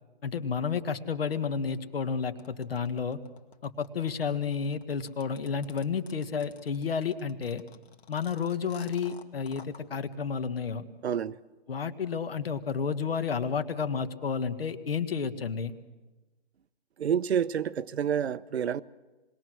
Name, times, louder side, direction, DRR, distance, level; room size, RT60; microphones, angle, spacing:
voice 1, 0.2-3.2 3.6-7.6 8.1-10.9 11.7-15.7, left 6 dB, 65° left, 1.6 m, -31 dB
sound 1, 2.4-9.8, left 6 dB, 90° left, 2.3 m, -53 dB
voice 2, 11.0-11.4 17.0-18.8, right 8 dB, 85° right, 0.8 m, -28 dB
27.0 x 21.0 x 6.3 m
hypercardioid pair, 180°, 31 cm